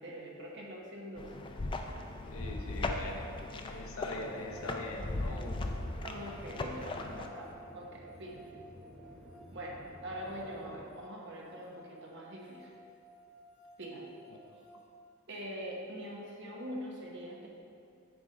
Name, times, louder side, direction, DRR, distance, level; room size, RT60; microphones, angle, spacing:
voice 1, 0.0-1.3 6.0-8.4 9.5-12.7 13.8-14.2 15.3-17.5, equal, 60° right, -2 dB, 1.1 m, -43 dB
sound 1, 1.2-7.3, left 2 dB, 25° left, 0.3 m, -38 dB
voice 2, 2.3-3.3 3.6-5.7 14.5-14.6, left 1 dB, 80° left, 1 dB, 0.8 m, -42 dB
sound 2, 2.3-14.8, right 1 dB, 90° right, 1.7 m, -57 dB
sound 3, 4.3-10.8, equal, 5° left, 0.9 m, -53 dB
7.9 x 3.4 x 5.5 m, 2.5 s
head